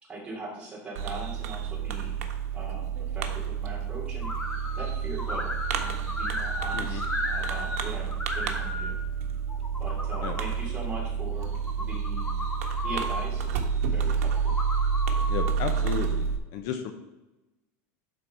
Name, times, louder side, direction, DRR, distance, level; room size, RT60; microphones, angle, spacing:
voice 1, 0.0-2.1 2.5-4.3 4.8-9.0 9.8-12.3 12.8-14.5, right 2 dB, 15° right, -4 dB, 2.8 m, -40 dB
Fireworks, 1.0-16.4, right 7 dB, 80° right, 1.1 m, -30 dB
sound 1, 4.2-4.9 5.2-7.8 8.1-8.9 9.5-10.5 11.4-13.2 14.3-15.5, left 1 dB, 10° left, 0.9 m, -34 dB
voice 2, 15.3-16.3 16.5-16.9, left 8 dB, 50° left, 6 dB, 0.8 m, -33 dB
11.5 x 4.0 x 4.4 m, 1.0 s
supercardioid pair, 150°, 8 cm